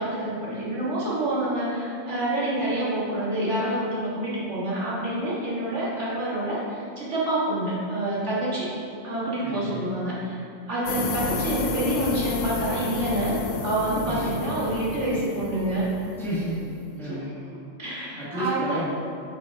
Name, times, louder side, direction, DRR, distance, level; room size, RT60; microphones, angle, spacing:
voice 1, 0.0-8.7 9.0-10.4 10.7-15.9 17.0-17.2 17.8-18.8, right 1 dB, 65° right, -8 dB, 2.0 m, -27 dB
voice 2, 9.4-9.9 14.1-14.3 16.2-17.3 18.2-18.8, equal, ahead, -7 dB, 1.3 m, -32 dB
sound 1, 10.9-17.0, left 4 dB, 90° left, 1.1 m, -32 dB
8.7 x 6.1 x 2.8 m, 2.4 s
omnidirectional pair, 1.3 m